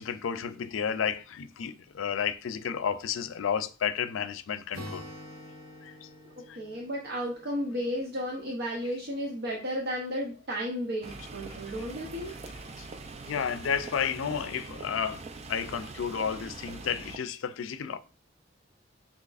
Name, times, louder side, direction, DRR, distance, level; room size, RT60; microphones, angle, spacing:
voice 1, 0.0-5.0 5.8-6.1 6.5-6.6 11.5-11.6 12.8-12.9 13.3-15.2 15.5-18.0, left 7 dB, 85° left, 0.4 m, -32 dB
Acoustic guitar, 4.7-8.5, left 1 dB, 85° right, 1.3 m, -46 dB
voice 2, 6.4-12.3, equal, 60° right, 0.8 m, -33 dB
sound 1, 11.0-17.2, right 3 dB, 35° right, 0.4 m, -43 dB
6.3 x 2.8 x 2.4 m
head